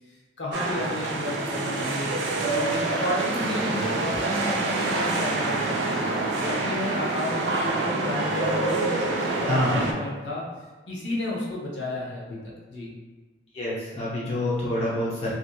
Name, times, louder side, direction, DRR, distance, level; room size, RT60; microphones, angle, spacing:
voice 1, 0.4-2.2 2.5-6.0 6.4-10.4 10.9-12.4 12.7-12.9, left 1 dB, 80° left, -5 dB, 0.7 m, -32 dB
sound 1, 0.5-9.9, right 2 dB, 85° right, 0.4 m, -26 dB
voice 2, 9.4-9.8 13.5-15.3, left 1 dB, 35° left, -7 dB, 0.5 m, -27 dB
2.6 x 2.5 x 2.2 m, 1.3 s
head